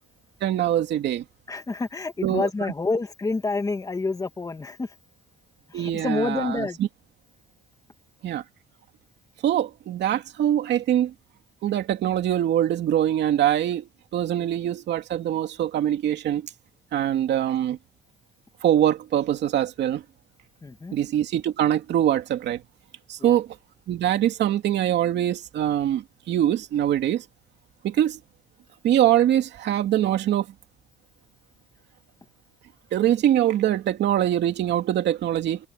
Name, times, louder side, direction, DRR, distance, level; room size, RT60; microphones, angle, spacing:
voice 1, 0.4-1.2 2.2-2.5 5.7-6.7 8.2-8.4 9.4-11.1 11.6-13.9 14.1-16.4 16.9-17.8 18.6-20.0 20.9-22.6 23.1-23.5 23.9-27.2 27.8-28.2 28.8-30.5 32.9-35.6, right 11 dB, 80° right, 2.6 m, -23 dB
voice 2, 1.5-4.9 5.7-6.8 14.4-14.5 20.6-20.9 23.2-23.4, left 3 dB, 20° left, 2.2 m, -28 dB
cardioid pair, 145°, 18 cm